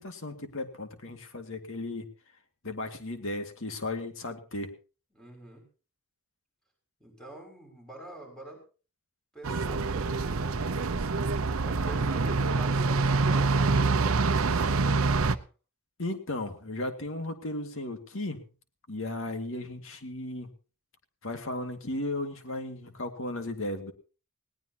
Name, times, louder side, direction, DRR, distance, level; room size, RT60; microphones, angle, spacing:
voice 1, 0.0-2.1 2.6-4.7 16.0-18.4 18.9-20.5 21.2-23.9, left 2 dB, 60° left, 6 dB, 2.2 m, -35 dB
voice 2, 5.1-5.6 7.0-8.6 9.3-10.6 11.6-15.4, right 1 dB, 5° left, 1 dB, 6.2 m, -46 dB
sound 1, 9.4-15.3, right 3 dB, 70° right, 0.8 m, -26 dB
20.0 x 18.0 x 2.9 m, 0.36 s
head